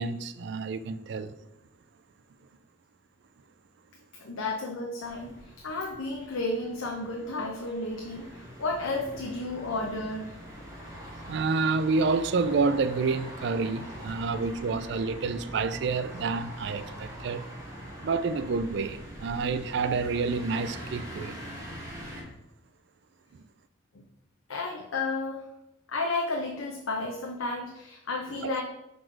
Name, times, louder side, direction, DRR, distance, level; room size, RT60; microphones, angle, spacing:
voice 1, 0.0-1.4 11.3-17.4 18.0-21.4 28.4-28.6, right 4 dB, 60° right, 0.3 m, -28 dB
voice 2, 4.2-5.3 5.6-10.3 23.9-24.0 24.5-25.4 25.9-28.6, left 2 dB, 90° left, 0.7 m, -32 dB
sound 1, 5.0-22.2, equal, 15° right, 1.5 m, -43 dB
6.1 x 4.2 x 4.5 m
head